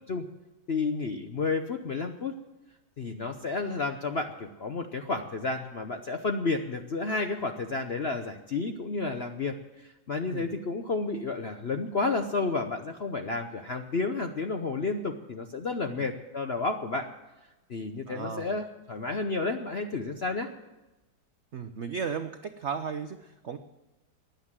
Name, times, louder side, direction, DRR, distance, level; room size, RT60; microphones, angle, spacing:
voice 1, 0.7-2.3 3.0-17.1 17.7-20.5, left 3 dB, 55° left, 6 dB, 0.7 m, -31 dB
voice 2, 18.1-18.6 21.5-23.6, right 6 dB, 70° right, 8 dB, 0.6 m, -35 dB
16.0 x 10.5 x 7.4 m, 1.0 s
omnidirectional pair, 2.1 m